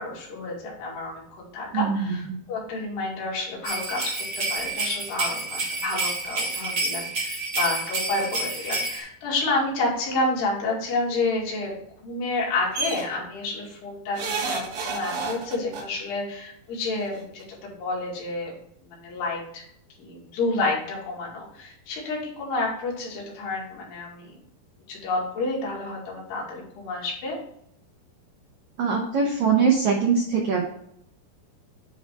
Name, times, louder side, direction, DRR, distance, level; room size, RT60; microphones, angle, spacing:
voice 1, 0.0-2.2 2.5-11.7 12.0-18.5 18.8-19.6 20.0-24.4 24.9-27.4, left 2 dB, 75° left, -3 dB, 4.2 m, -29 dB
voice 2, 1.7-2.4 28.8-30.6, right 6 dB, 85° right, 1 dB, 1.6 m, -22 dB
sound 1, 3.6-9.0, right 3 dB, 50° right, 1.5 m, -29 dB
sound 2, 12.7-13.0 14.2-15.8 17.0-17.1 17.4-17.5, right 4 dB, 70° right, 2.9 m, -30 dB
9.9 x 3.4 x 4.4 m, 0.72 s
omnidirectional pair, 4.8 m